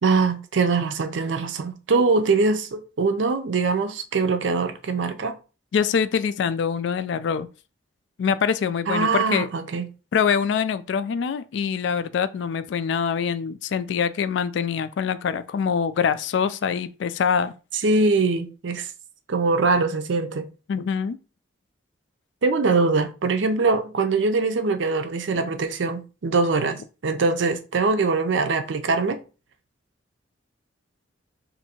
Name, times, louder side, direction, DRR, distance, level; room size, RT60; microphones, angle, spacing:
voice 1, 0.0-5.4 8.9-9.9 17.8-18.9 19.3-20.5 22.4-29.2, right 3 dB, 80° right, 0.5 m, -22 dB
voice 2, 5.7-7.5 8.2-9.5 10.1-17.5 20.7-21.2, left 6 dB, 75° left, 0.3 m, -24 dB
2.7 x 2.6 x 4.2 m
head